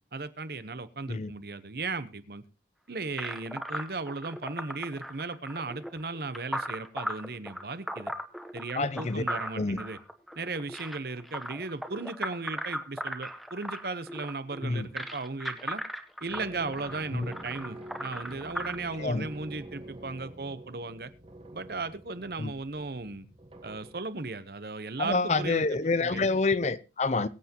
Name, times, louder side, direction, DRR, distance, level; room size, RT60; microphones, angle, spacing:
voice 1, 0.0-2.4 2.9-8.1 8.5-10.0 10.3-15.8 16.2-21.1 21.5-23.3 23.6-25.6 26.0-26.3, right 3 dB, 55° right, 0.9 m, -36 dB
sound 1, 3.2-18.7, equal, ahead, 1.0 m, -37 dB
voice 2, 8.7-9.2 9.6-9.8 14.6-14.9 17.1-17.3 19.0-19.3 22.4-22.5 25.0-27.3, left 3 dB, 40° left, 0.6 m, -27 dB
sound 2, 16.3-24.3, right 1 dB, 30° right, 1.4 m, -47 dB
22.5 x 8.2 x 2.9 m
head